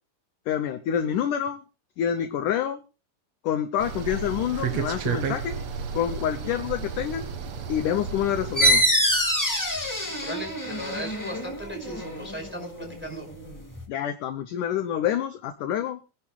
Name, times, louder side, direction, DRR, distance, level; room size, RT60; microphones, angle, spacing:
voice 1, 0.5-1.6 2.0-2.8 3.4-5.6 5.9-7.3 7.7-8.8 13.9-16.0, left 10 dB, 75° left, 9 dB, 2.0 m, -27 dB
sound 1, 3.8-8.8, right 6 dB, 55° right, 2.1 m, -32 dB
sound 2, 8.6-13.8, equal, 30° left, 0.3 m, -26 dB
voice 2, 10.2-13.2, equal, 5° right, 1 dB, 4.5 m, -36 dB
24.5 x 11.0 x 2.3 m, 0.31 s
omnidirectional pair, 4.5 m